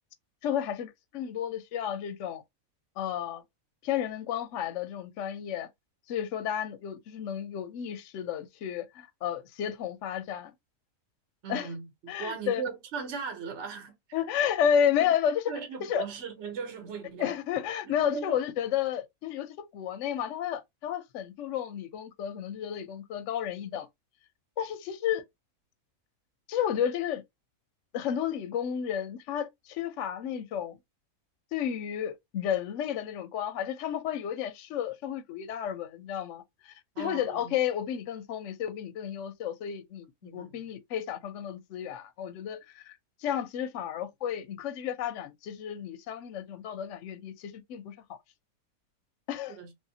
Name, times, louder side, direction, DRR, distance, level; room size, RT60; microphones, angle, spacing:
voice 1, 0.4-2.4 3.0-3.4 3.8-5.7 6.1-10.5 11.5-11.7 12.1-12.6 14.1-15.5 15.8-16.1 17.2-23.9 24.6-25.2 26.5-27.2 27.9-30.8 31.5-48.2 49.3-49.6, left 9 dB, 70° left, 0.8 m, -32 dB
voice 2, 11.4-14.0 14.3-14.5 15.0-15.1 15.5-17.4 17.8-18.4 36.9-37.5 40.2-40.5 49.5-49.7, right 5 dB, 55° right, 1.2 m, -38 dB
3.1 x 2.7 x 2.7 m
omnidirectional pair, 1.5 m